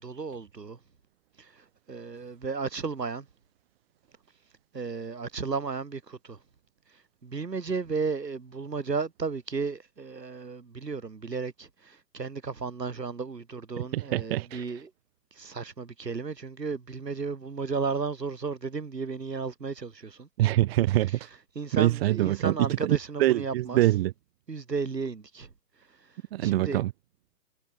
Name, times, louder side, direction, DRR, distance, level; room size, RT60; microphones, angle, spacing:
voice 1, 0.0-0.8 1.4-3.3 4.7-6.4 7.2-14.9 15.4-20.3 21.1-21.2 21.5-23.8 24.5-25.5 26.4-26.8, right 4 dB, 75° right, 5.9 m, -34 dB
voice 2, 13.8-14.6 20.4-21.2 21.7-24.1 26.3-26.9, right 15 dB, 35° right, 2.0 m, -25 dB
figure-of-eight pair, 125°, 49 cm